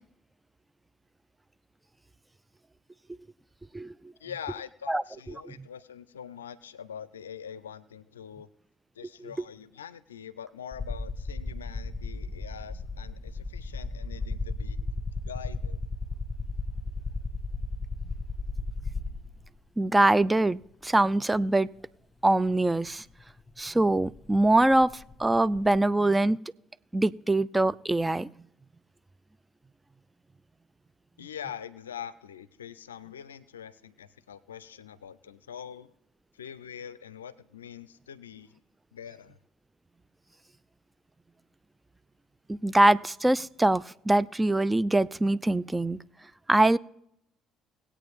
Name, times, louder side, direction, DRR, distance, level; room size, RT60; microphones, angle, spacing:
voice 1, 4.2-8.5 9.0-14.8 15.2-15.8 31.2-35.9 36.3-38.6 38.9-39.4, left 8 dB, 90° left, 17 dB, 0.4 m, -43 dB
sound 1, 10.7-19.5 20.6-20.7 22.9-23.0 23.2-25.8, left 3 dB, 25° left, 1.7 m, -35 dB
voice 2, 19.8-21.7 22.2-23.0 23.6-26.4 26.9-28.3 42.5-46.0 46.5-46.8, right 2 dB, 15° right, 19 dB, 0.4 m, -23 dB
19.5 x 8.5 x 3.5 m, 0.77 s
hypercardioid pair, 55°, 0 cm